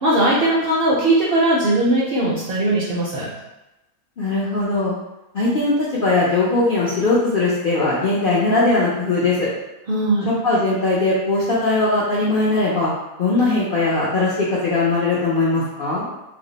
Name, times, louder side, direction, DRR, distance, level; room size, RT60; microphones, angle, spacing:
voice 1, 0.0-3.3 9.9-10.3, right 1 dB, 60° right, -6 dB, 0.6 m, -19 dB
voice 2, 4.2-4.9 5.3-9.5 10.4-12.9 13.2-16.0, left 2 dB, 60° left, -8 dB, 0.5 m, -19 dB
2.5 x 2.0 x 3.8 m, 0.95 s
omnidirectional pair, 1.5 m